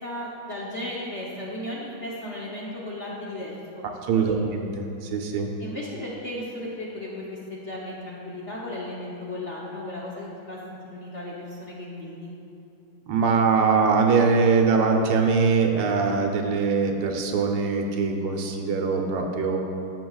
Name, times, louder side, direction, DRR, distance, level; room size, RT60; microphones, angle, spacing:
voice 1, 0.0-3.8 4.1-4.4 5.6-12.3, left 1 dB, 50° left, -6 dB, 0.8 m, -35 dB
voice 2, 4.1-5.5 13.1-19.6, right 4 dB, 85° right, 2 dB, 1.7 m, -22 dB
14.0 x 6.0 x 2.3 m, 2.7 s
omnidirectional pair, 2.3 m